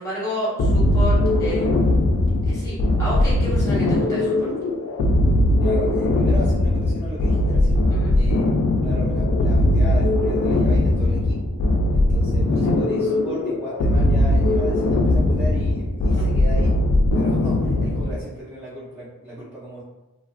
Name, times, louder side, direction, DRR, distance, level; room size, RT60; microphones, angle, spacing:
voice 1, 0.0-2.0 2.4-4.5 7.9-8.1 16.1-16.3, left 1 dB, 15° left, -9 dB, 1.0 m, -30 dB
sound 1, 0.6-18.2, left 1 dB, 65° left, 0.3 m, -19 dB
voice 2, 5.6-7.8 8.1-11.5 11.9-16.7 17.1-19.8, equal, 10° right, -12 dB, 0.6 m, -35 dB
2.4 x 2.4 x 2.4 m, 1.0 s
head